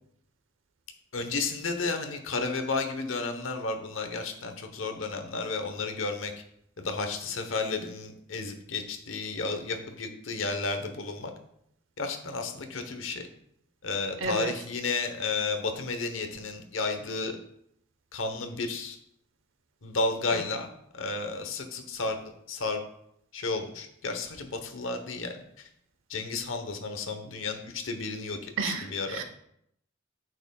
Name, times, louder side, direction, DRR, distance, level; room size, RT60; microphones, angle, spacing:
voice 1, 1.1-6.3 6.8-11.3 12.0-13.2 13.8-17.4 18.1-19.0 19.8-20.7 20.9-22.2 22.5-22.8 23.3-25.7 26.1-29.2, left 3 dB, 80° left, 6 dB, 1.0 m, -32 dB
voice 2, 14.2-14.5 20.3-20.4 28.6-29.2, right 4 dB, 75° right, 7 dB, 0.8 m, -32 dB
8.8 x 6.5 x 2.3 m, 0.73 s
head